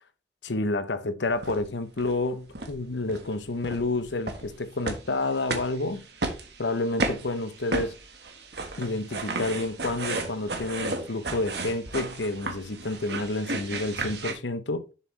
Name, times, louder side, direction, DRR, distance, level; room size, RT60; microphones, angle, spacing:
voice 1, 0.4-6.0 6.6-8.0 8.8-14.8, left 2 dB, 80° left, 0.8 m, -29 dB
sound 1, 1.4-1.6 2.0-2.3 2.5-2.8 3.1-3.3 3.6-14.3, right 3 dB, 65° right, 1.5 m, -34 dB
7.3 x 6.7 x 3.3 m
head